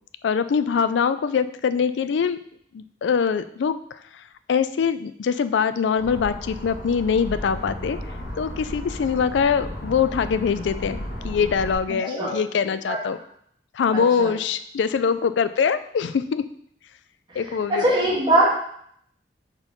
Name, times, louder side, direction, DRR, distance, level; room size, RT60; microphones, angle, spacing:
voice 1, 0.2-2.4 2.7-4.2 4.5-8.0 8.4-11.0 11.2-13.2 13.7-16.4 17.4-17.9, left 6 dB, 85° left, 12 dB, 0.4 m, -23 dB
sound 1, 6.0-11.8, equal, 55° left, 1.7 m, -34 dB
voice 2, 12.0-12.4 12.7-13.0 13.9-14.3 17.3-18.5, right 1 dB, 25° right, -5 dB, 1.6 m, -22 dB
4.5 x 4.4 x 5.3 m, 0.67 s
head